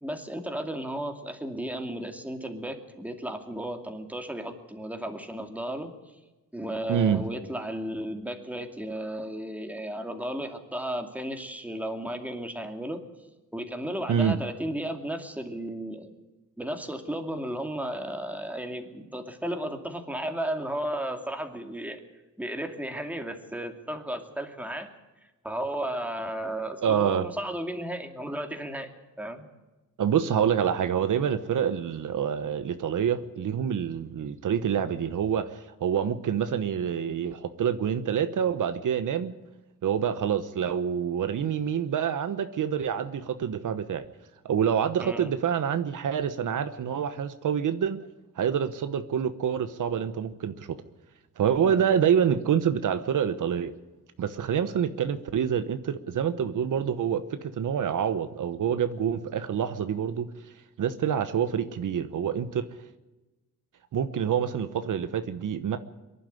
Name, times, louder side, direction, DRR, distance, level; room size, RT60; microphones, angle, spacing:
voice 1, 0.0-5.9 6.5-13.0 13.5-16.1 16.6-22.0 22.4-24.9 25.2-28.9 29.2-29.5 45.0-45.3 51.6-51.8, right 1 dB, 5° right, 5 dB, 2.4 m, -34 dB
voice 2, 6.9-7.2 14.1-14.4 26.8-27.3 30.0-39.3 39.8-44.0 44.4-48.0 48.4-50.8 51.4-53.7 54.2-60.3 60.8-62.7 63.9-65.8, right 8 dB, 65° right, 11 dB, 1.1 m, -27 dB
23.5 x 11.5 x 9.7 m, 1.1 s
wide cardioid pair, 130°, 33 cm